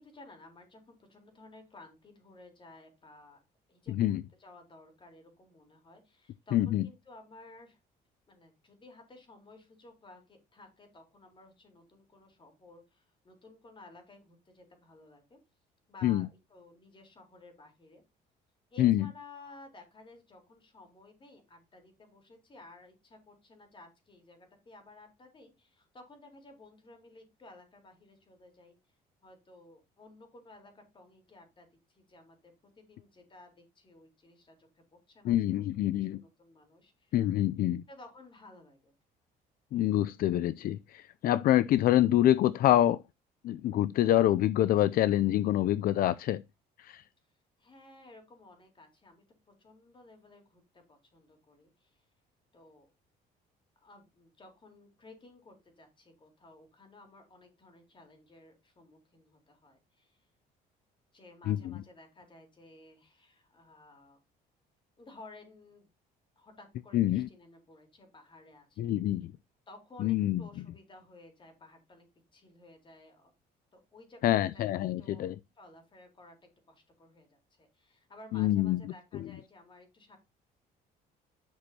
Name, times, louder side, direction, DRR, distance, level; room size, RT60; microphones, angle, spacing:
voice 1, 0.0-3.4 3.7-4.0 4.4-7.8 8.3-15.4 15.9-18.0 18.7-28.8 29.2-35.7 36.1-37.2 37.9-38.9 47.6-52.0 52.5-52.9 53.8-60.3 61.1-64.2 65.0-65.9 66.4-68.9 69.7-72.1 72.3-73.3 73.7-74.3 75.0-75.3 75.6-80.2, left 2 dB, 30° left, 4.0 m, -55 dB
voice 2, 3.9-4.2 6.5-6.9 16.0-16.3 18.8-19.1 35.2-36.2 37.1-37.8 39.7-43.0 43.4-46.4 46.8-47.1 61.5-61.7 66.9-67.3 68.8-69.3 70.0-70.4 74.2-75.4 78.3-78.8 79.1-79.3, left 13 dB, 60° left, 0.4 m, -26 dB
10.5 x 6.2 x 2.8 m
cardioid pair, 110°, 17 cm